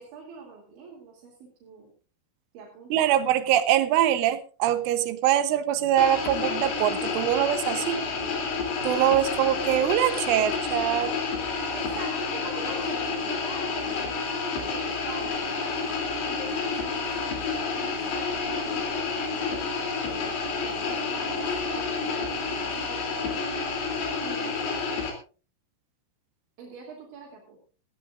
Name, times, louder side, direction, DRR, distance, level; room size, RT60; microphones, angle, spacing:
voice 1, 0.0-1.9 2.5-3.0 11.7-16.0 16.3-19.0 19.3-19.5 20.0-23.7 24.2-25.1 26.6-27.6, right 3 dB, 70° right, -2 dB, 5.1 m, -44 dB
voice 2, 2.9-8.0 8.8-11.1, right 11 dB, 90° right, 11 dB, 3.5 m, -23 dB
sound 1, 6.0-25.1, left 4 dB, 60° left, 4.9 m, -29 dB
19.0 x 15.5 x 2.5 m, 0.36 s
omnidirectional pair, 5.5 m